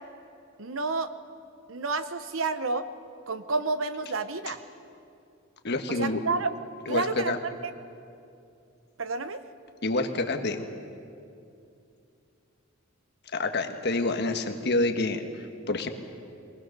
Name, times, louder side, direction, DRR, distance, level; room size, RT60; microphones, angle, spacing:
voice 1, 0.6-1.1 1.7-2.8 3.3-4.6 5.9-6.5 6.9-7.3 7.6-7.7 9.0-9.4, right 3 dB, 65° right, 11 dB, 0.9 m, -30 dB
voice 2, 5.6-6.2 6.9-7.4 9.8-10.7 13.3-15.9, left 2 dB, 55° left, 6 dB, 1.4 m, -28 dB
23.0 x 18.5 x 6.7 m, 2.5 s
head